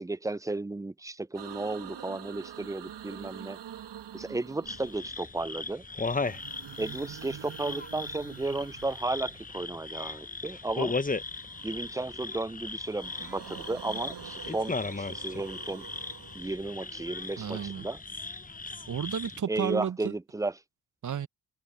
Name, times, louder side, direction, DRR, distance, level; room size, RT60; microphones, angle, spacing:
voice 1, 0.0-3.6 4.1-5.8 6.8-11.0 11.6-15.9 16.3-18.0 19.5-20.5, right 2 dB, 10° right, 0.5 m, -34 dB
sound 1, 1.3-5.3 6.0-9.8 11.1-12.3 12.6-17.6, right 9 dB, 65° right, 2.1 m, -46 dB
sound 2, 4.7-19.4, left 3 dB, 20° left, 1.1 m, -37 dB
voice 2, 17.4-17.9 18.9-20.1 21.0-21.3, right 8 dB, 40° right, 1.0 m, -32 dB
supercardioid pair, 45°, 45 cm